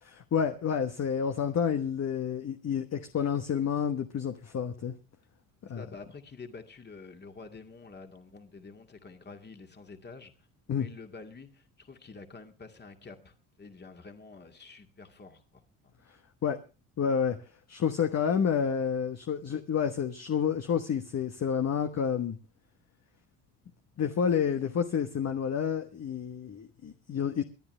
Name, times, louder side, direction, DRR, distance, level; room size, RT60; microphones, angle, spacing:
voice 1, 0.0-4.9 5.7-5.8 10.7-10.9 16.4-16.6 17.0-17.4 17.7-22.4 24.0-27.4, left 7 dB, 40° left, 1.2 m, -29 dB
voice 2, 5.6-10.5 10.8-15.9, left 4 dB, 25° left, 2.2 m, -48 dB
24.0 x 10.0 x 3.2 m
supercardioid pair, 80°, 40 cm